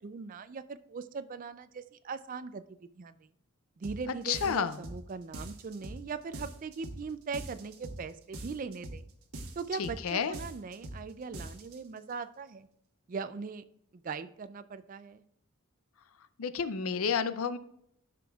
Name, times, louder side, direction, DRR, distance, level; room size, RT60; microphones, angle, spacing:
voice 1, 0.0-3.3 3.8-9.0 9.6-12.7 13.1-13.6 13.9-15.2, right 5 dB, 35° right, 13 dB, 0.3 m, -40 dB
sound 1, 3.8-4.0 4.3-5.0 5.3-6.0 6.3-7.0 7.3-8.0 8.3-9.0 9.3-10.0 10.3-11.0 11.3-11.8, right 1 dB, 75° right, 1.1 m, -42 dB
voice 2, 4.3-4.8 9.8-10.4 16.4-17.6, left 6 dB, 70° left, 13 dB, 0.5 m, -30 dB
13.5 x 6.0 x 2.4 m, 0.72 s
head